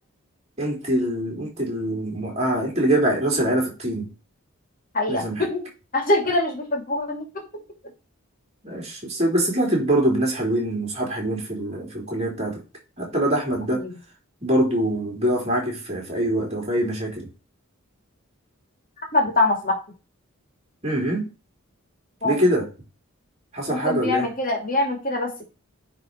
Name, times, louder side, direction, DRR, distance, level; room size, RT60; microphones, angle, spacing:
voice 1, 0.6-4.1 5.1-5.5 8.6-12.6 13.0-13.9 14.4-17.3 20.8-21.3 22.2-22.7 23.5-24.3, right 1 dB, 30° right, 3.3 m, -24 dB
voice 2, 4.9-5.6 5.9-7.3 13.7-13.9 19.1-19.8 22.2-22.4 23.7-25.4, left 2 dB, 40° left, 2.5 m, -23 dB
9.4 x 4.1 x 4.6 m
head